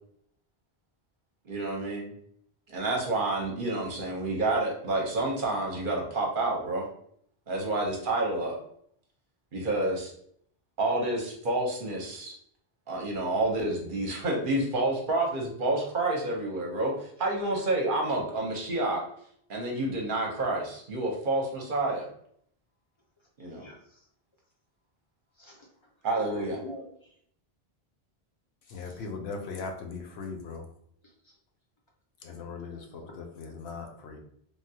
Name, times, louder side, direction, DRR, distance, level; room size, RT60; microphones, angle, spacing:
voice 1, 1.5-2.1 2.7-6.9 7.5-8.6 9.5-10.1 10.8-12.3 12.9-19.0 19.5-22.1 23.4-23.7 26.0-26.6, right 2 dB, 60° right, 0 dB, 0.9 m, -29 dB
voice 2, 23.4-24.1 25.3-25.7 26.1-27.2 28.7-29.0 31.0-31.4, left 1 dB, 30° left, -2 dB, 0.7 m, -45 dB
voice 3, 28.7-30.6 32.2-34.2, left 4 dB, 80° left, 3 dB, 0.9 m, -39 dB
3.4 x 2.3 x 2.7 m, 0.65 s
omnidirectional pair, 1.1 m